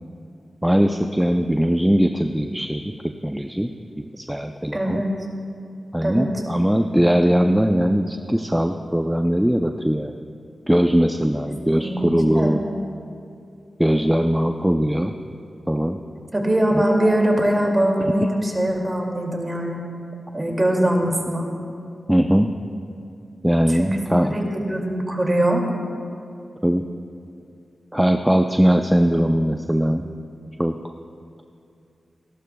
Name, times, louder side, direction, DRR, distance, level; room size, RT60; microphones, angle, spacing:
voice 1, 0.6-2.9 3.2-3.7 4.0-5.0 5.9-10.1 10.7-12.6 13.8-15.1 15.7-16.0 16.7-16.8 22.1-22.5 23.4-24.4 26.6-26.9 27.9-30.1 30.6-30.9, equal, 5° right, 5 dB, 0.5 m, -20 dB
voice 2, 4.7-5.1 6.0-6.3 11.7-12.6 16.3-19.8 20.3-21.5 23.7-24.0 24.3-24.4 24.7-25.6, right 1 dB, 25° right, 0 dB, 2.4 m, -22 dB
30.0 x 12.0 x 2.3 m, 2.5 s
cardioid pair, 65°, 0 cm